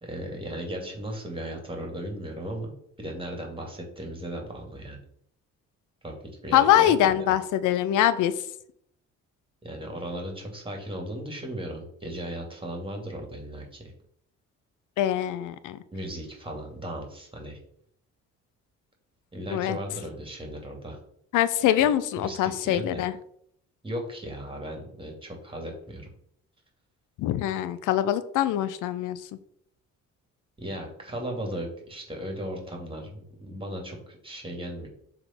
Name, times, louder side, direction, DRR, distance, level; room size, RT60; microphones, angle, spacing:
voice 1, 0.0-2.7 3.0-5.0 6.0-6.1 6.4-7.4 9.6-13.8 15.9-17.6 19.3-21.0 22.2-23.1 23.8-26.1 30.6-34.9, right 1 dB, 15° right, 2 dB, 2.6 m, -36 dB
voice 2, 6.5-8.3 15.0-15.8 19.5-19.8 21.3-23.1 27.2-29.2, left 11 dB, 90° left, 14 dB, 0.6 m, -23 dB
6.9 x 3.8 x 5.8 m, 0.68 s
cardioid pair, 90°, 30 cm